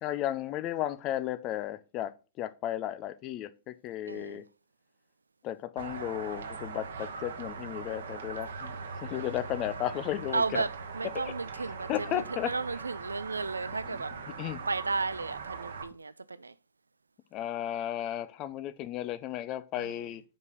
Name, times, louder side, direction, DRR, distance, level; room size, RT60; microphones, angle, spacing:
voice 1, 0.0-4.4 5.4-8.7 9.0-10.6 11.1-11.3 11.9-12.5 13.9-14.0 14.4-14.6 17.3-20.2, left 12 dB, 35° left, 0.5 m, -34 dB
voice 2, 4.1-4.4 10.3-14.2 14.7-16.5 19.8-20.0, right 3 dB, 80° right, 0.3 m, -34 dB
sound 1, 5.8-15.8, right 5 dB, 65° right, 1.0 m, -41 dB
5.3 x 4.7 x 5.3 m
figure-of-eight pair, 100°, 0 cm